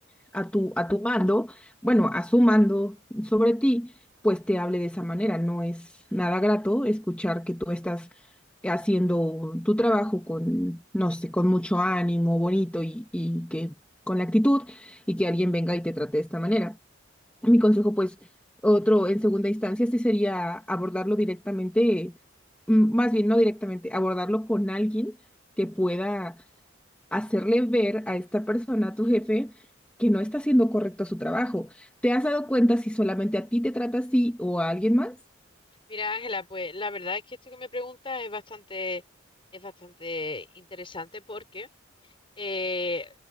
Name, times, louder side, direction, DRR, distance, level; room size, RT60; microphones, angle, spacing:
voice 1, 0.3-3.9 4.2-8.1 8.6-13.7 14.1-16.8 17.4-18.2 18.6-22.1 22.7-25.2 25.6-26.4 27.1-29.5 30.0-35.2, equal, 5° left, 2.0 m, -24 dB
voice 2, 35.9-39.0 39.5-41.7 42.4-43.1, left 3 dB, 25° left, 6.4 m, -34 dB
head